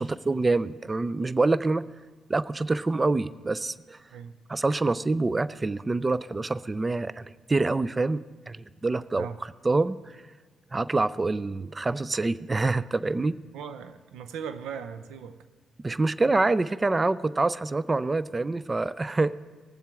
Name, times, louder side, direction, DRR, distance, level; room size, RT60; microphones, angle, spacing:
voice 1, 0.0-1.8 2.3-4.0 4.5-10.0 10.7-13.3 15.8-19.4, right 3 dB, 25° right, 17 dB, 0.4 m, -26 dB
voice 2, 13.5-15.4, right 7 dB, 85° right, 11 dB, 0.6 m, -38 dB
19.0 x 7.4 x 3.5 m, 1.4 s
supercardioid pair, 65°, 0 cm